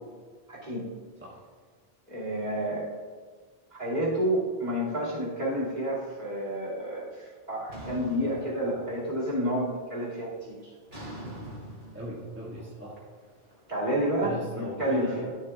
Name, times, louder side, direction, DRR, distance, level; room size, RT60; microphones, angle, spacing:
voice 1, 0.5-0.9 2.1-2.9 3.8-10.7 13.7-15.2, equal, 45° right, -4 dB, 2.4 m, -30 dB
sound 1, 7.7-9.2 9.6-10.0 10.9-14.0, right 1 dB, 70° right, 2.6 m, -44 dB
voice 2, 11.9-13.0 14.2-15.3, equal, 10° right, -8 dB, 1.6 m, -38 dB
12.5 x 7.2 x 2.3 m, 1.5 s
omnidirectional pair, 1.0 m